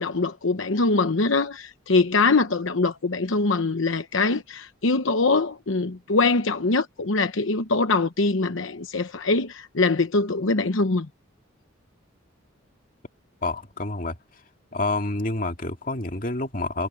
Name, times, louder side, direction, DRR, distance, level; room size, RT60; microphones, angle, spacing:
voice 1, 0.0-11.1, left 3 dB, 75° left, 1.0 m, -23 dB
voice 2, 13.4-14.2 14.7-16.9, left 2 dB, 45° left, 2.1 m, -28 dB
head